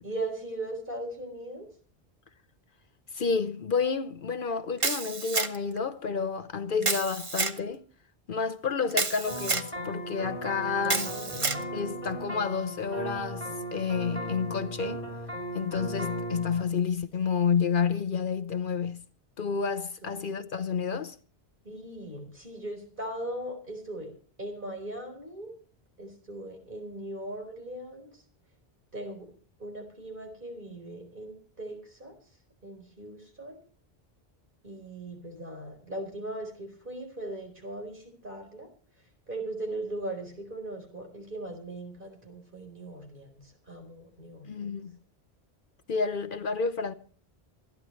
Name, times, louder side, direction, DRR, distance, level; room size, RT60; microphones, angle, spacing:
voice 1, 0.0-1.7 6.8-6.9 10.8-11.6 20.0-20.1 21.6-24.1 24.4-25.5 26.0-28.1 28.9-29.3 29.6-32.1 32.6-33.6 34.6-38.7 39.3-44.5, right 1 dB, 55° right, 4.4 m, -39 dB
voice 2, 3.1-7.8 8.3-11.1 11.7-15.0 15.5-19.0 19.4-21.2 44.5-44.9 45.9-46.9, left 5 dB, 60° left, 0.9 m, -30 dB
Camera, 4.8-5.8 6.8-7.6 8.9-9.7 10.8-11.6, right 4 dB, 35° right, 0.9 m, -29 dB
sound 1, 9.3-16.6, right 1 dB, 30° left, 4.6 m, -37 dB
27.5 x 10.5 x 3.2 m
omnidirectional pair, 1.0 m